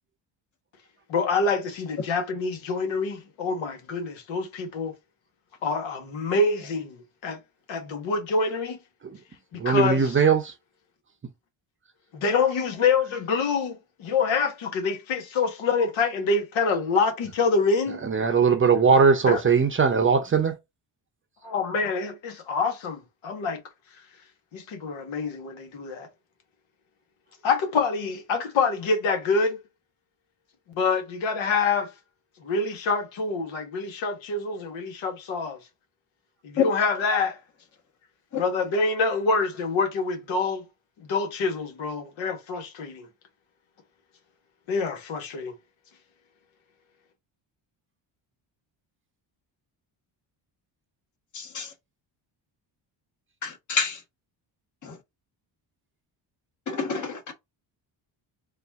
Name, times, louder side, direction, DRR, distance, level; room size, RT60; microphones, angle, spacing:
voice 1, 1.1-4.9 5.6-7.0 7.2-7.4 7.7-8.8 9.5-10.2 12.1-18.0 19.3-19.4 21.4-23.6 24.5-26.1 27.4-29.6 30.7-31.9 32.4-35.6 36.4-37.4 38.4-40.6 41.0-43.1 44.7-45.5, left 4 dB, 80° left, 1.5 m, -26 dB
voice 2, 9.6-10.5 18.0-20.6, right 5 dB, 25° right, 0.7 m, -20 dB
voice 3, 51.3-51.7 53.4-54.0 54.8-54.9 56.7-57.3, left 6 dB, 40° left, 1.2 m, -28 dB
4.0 x 2.5 x 3.5 m
cardioid pair, 140°, 46 cm